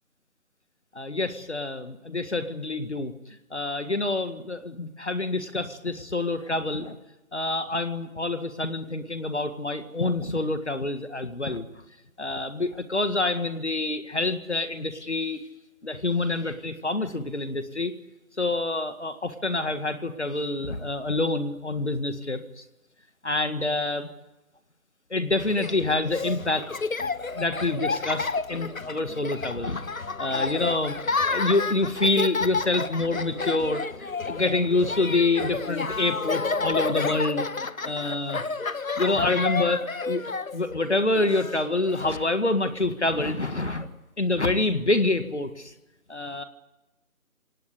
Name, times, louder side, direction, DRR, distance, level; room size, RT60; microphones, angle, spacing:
voice 1, 1.0-7.0 7.3-11.7 12.2-15.4 15.8-17.9 18.4-22.6 23.2-24.1 25.1-26.7 27.4-37.5 37.8-38.4 39.0-40.2 40.5-43.9 44.2-45.7 46.1-46.4, left 2 dB, 50° left, 9 dB, 1.9 m, -27 dB
Laughter, 25.4-42.2, left 4 dB, 65° left, 1.2 m, -30 dB
28.0 x 18.5 x 8.3 m, 1.0 s
figure-of-eight pair, 175°, 44 cm